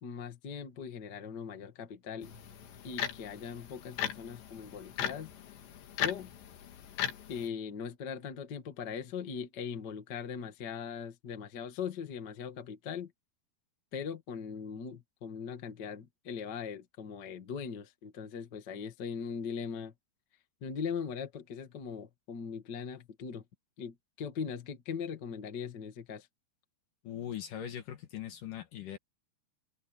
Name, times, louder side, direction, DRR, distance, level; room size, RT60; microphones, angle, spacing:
voice 1, 0.0-2.3 2.8-5.3 6.0-6.3 7.3-13.1 13.9-19.9 20.6-23.4 23.8-26.3, left 6 dB, 40° left, 1.5 m, -40 dB
sound 1, 2.2-7.5, left 10 dB, 85° left, 4.4 m, -38 dB
voice 2, 27.0-29.0, left 10 dB, 60° left, 2.7 m, -40 dB
omnidirectional pair, 4.9 m